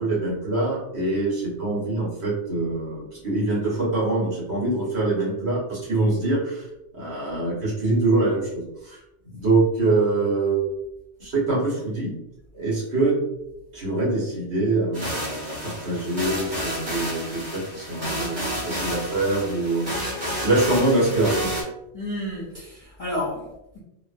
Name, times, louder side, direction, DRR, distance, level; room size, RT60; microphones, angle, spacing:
voice 1, 0.0-6.7 6.9-9.0 9.3-10.7 11.2-12.1 12.5-13.1 13.7-20.1 20.4-21.5, right 2 dB, 65° right, -6 dB, 1.4 m, -24 dB
sound 1, 14.9-21.6, equal, 25° right, 0.8 m, -31 dB
voice 2, 21.9-23.8, left 1 dB, 45° left, -7 dB, 0.4 m, -31 dB
2.8 x 2.1 x 2.4 m, 0.89 s
omnidirectional pair, 1.2 m